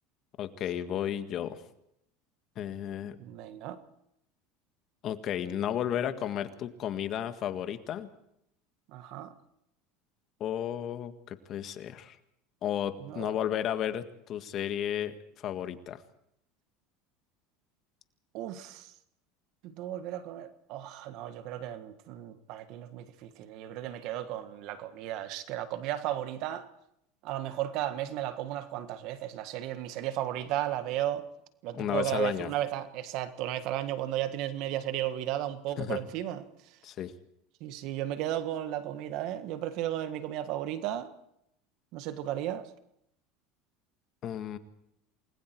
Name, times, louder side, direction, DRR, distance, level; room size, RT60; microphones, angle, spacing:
voice 1, 0.4-1.6 2.5-3.2 5.0-8.1 10.4-12.2 12.6-16.0 31.7-32.5 35.8-36.0 36.8-37.1 44.2-44.6, left 10 dB, 45° left, 1.7 m, -33 dB
voice 2, 3.2-3.8 8.9-9.3 13.0-13.4 18.3-18.9 19.6-26.7 27.2-31.3 31.6-36.8 37.6-41.1 41.9-42.7, right 12 dB, 60° right, 1.6 m, -34 dB
28.5 x 20.5 x 4.7 m
supercardioid pair, 110°, 0 cm